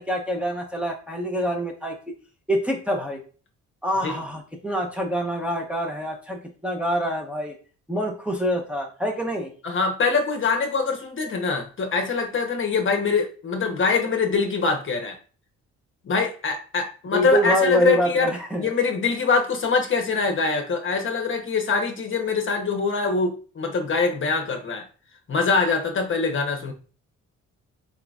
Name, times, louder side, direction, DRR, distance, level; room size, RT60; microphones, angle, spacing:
voice 1, 0.0-2.1 2.5-3.2 3.8-7.5 7.9-9.5 17.1-18.7, equal, 5° right, 0 dB, 0.9 m, -26 dB
voice 2, 9.6-15.2 16.0-18.3 18.6-24.8 25.3-26.7, left 4 dB, 40° left, 3 dB, 0.9 m, -23 dB
4.1 x 3.7 x 2.4 m, 0.38 s
cardioid pair, 90°, 30 cm